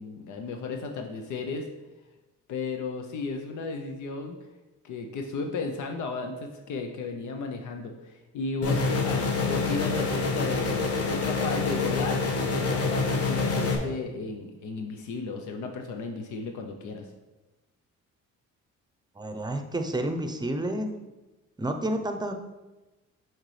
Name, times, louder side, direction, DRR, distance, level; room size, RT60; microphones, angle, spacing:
voice 1, 0.0-1.7 2.5-4.4 4.8-17.1, left 4 dB, 75° left, 3 dB, 0.7 m, -34 dB
sound 1, 8.6-13.8, left 4 dB, 50° left, 1.1 m, -26 dB
voice 2, 19.2-20.9 21.6-22.3, right 1 dB, 15° right, 6 dB, 0.6 m, -30 dB
6.5 x 4.4 x 3.2 m, 1.1 s
cardioid pair, 90°, 30 cm